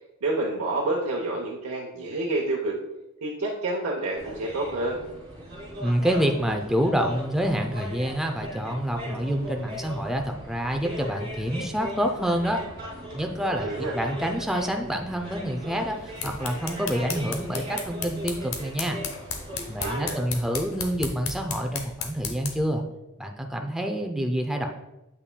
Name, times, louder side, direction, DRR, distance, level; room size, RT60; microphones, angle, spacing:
voice 1, 0.2-2.8 3.2-5.0 13.6-13.9 19.8-20.2, right 2 dB, 75° right, -2 dB, 0.8 m, -28 dB
sound 1, 4.1-20.0, equal, 45° right, 2.3 m, -38 dB
voice 2, 5.8-12.6 13.1-13.7 13.9-19.0 19.6-22.8 23.2-24.7, equal, ahead, 2 dB, 0.4 m, -27 dB
sound 2, 15.9-22.7, left 6 dB, 65° left, 0.8 m, -35 dB
8.2 x 5.7 x 2.2 m, 0.93 s
head